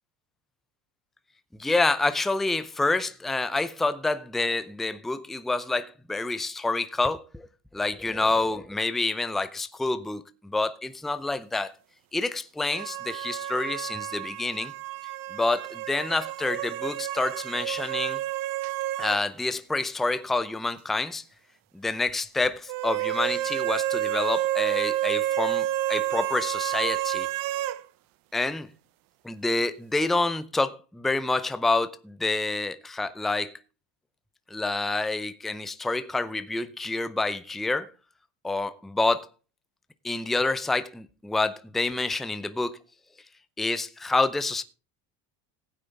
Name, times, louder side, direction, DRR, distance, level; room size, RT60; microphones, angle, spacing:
voice 1, 1.6-7.5 7.7-11.7 12.1-14.7 15.3-18.2 19.0-21.2 21.7-27.3 28.3-28.7 29.2-33.5 34.5-37.9 38.4-39.3 40.0-42.8 43.6-44.6, left 2 dB, ahead, 0.6 m, -28 dB
sound 1, 12.7-19.2 19.5-19.6 22.7-27.8, right 15 dB, 55° right, 0.7 m, -30 dB
16.0 x 9.1 x 3.5 m
cardioid pair, 130°, 41 cm